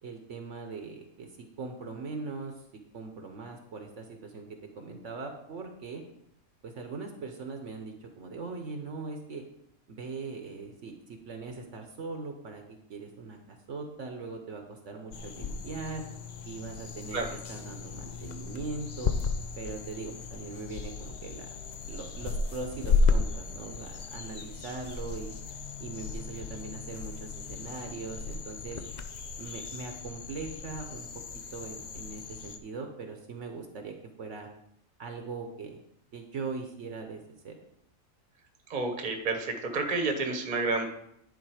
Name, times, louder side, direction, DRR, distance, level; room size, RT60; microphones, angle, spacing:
voice 1, 0.0-1.3 1.6-2.5 2.9-4.5 4.8-6.0 6.6-9.4 9.9-12.6 12.9-16.0 16.4-17.2 17.5-19.1 19.6-21.5 21.8-25.3 25.8-28.8 29.4-31.1 31.5-34.5 35.0-35.8 36.1-37.6, right 4 dB, 65° right, 4 dB, 1.2 m, -40 dB
sound 1, 15.1-32.6, left 4 dB, 60° left, 0.4 m, -34 dB
voice 2, 38.7-40.9, right 3 dB, 35° right, 5 dB, 1.1 m, -30 dB
10.5 x 4.0 x 4.9 m, 0.75 s
omnidirectional pair, 1.4 m